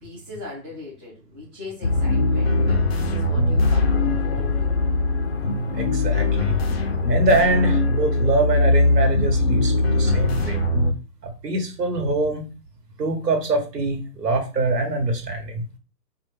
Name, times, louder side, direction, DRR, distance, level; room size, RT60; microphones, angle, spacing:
voice 1, 0.0-4.8, left 3 dB, 10° right, -9 dB, 0.5 m, -40 dB
sound 1, 1.8-10.9, left 2 dB, 40° left, 0.5 m, -21 dB
voice 2, 5.7-6.6 7.1-10.6 11.2-12.5 13.0-15.6, right 2 dB, 75° right, 4 dB, 1.3 m, -24 dB
4.5 x 2.3 x 3.3 m, 0.32 s
hypercardioid pair, 135°, 49 cm